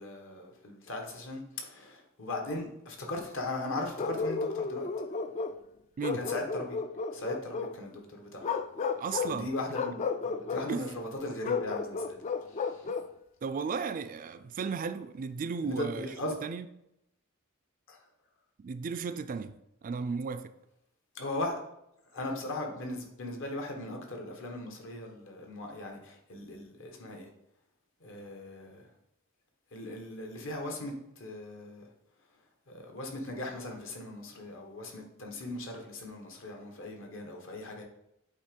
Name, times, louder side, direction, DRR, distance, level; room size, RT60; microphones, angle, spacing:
voice 1, 0.0-4.9 6.1-6.8 7.1-8.5 9.2-12.2 12.5-12.9 15.6-16.4 17.9-18.0 21.1-21.6 22.1-27.3 28.0-28.9 29.7-31.9 32.7-37.8, left 2 dB, 65° left, 1.4 m, -38 dB
Bark, 4.0-5.6 6.0-7.8 8.4-9.4 9.7-10.7 11.4-13.1, left 5 dB, 35° left, 0.3 m, -33 dB
voice 2, 9.0-9.5 10.7-10.9 13.4-16.1 16.4-16.7 18.6-19.6 19.8-20.5, right 5 dB, 40° right, 0.4 m, -34 dB
8.2 x 3.0 x 5.2 m
head